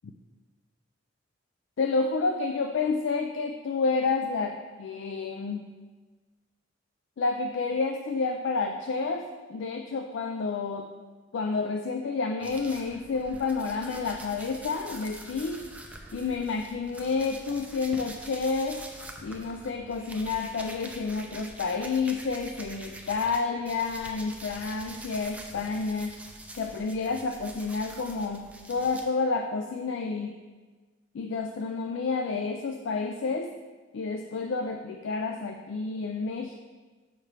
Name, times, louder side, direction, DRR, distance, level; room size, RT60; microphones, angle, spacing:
voice 1, 1.8-5.7 7.2-10.9 11.3-15.7 16.1-18.8 19.2-26.1 26.5-30.3 31.1-33.5 33.9-36.5, left 4 dB, 70° left, 4 dB, 0.4 m, -30 dB
sound 1, 12.4-23.4 23.6-29.0, right 1 dB, 5° right, 0.5 m, -45 dB
6.6 x 5.7 x 3.3 m, 1.4 s
head